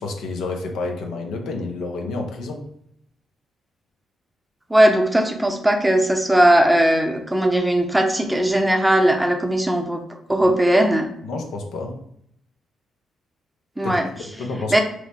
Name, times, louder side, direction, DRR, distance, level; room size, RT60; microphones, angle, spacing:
voice 1, 0.0-2.7 10.4-10.5 11.2-12.0 13.8-14.8, left 3 dB, 75° left, 3 dB, 0.5 m, -29 dB
voice 2, 4.7-10.0 10.3-11.1 13.8-14.1 14.7-14.8, right 1 dB, 10° right, 3 dB, 0.7 m, -18 dB
3.0 x 2.0 x 4.1 m, 0.72 s
hypercardioid pair, 50°, 0 cm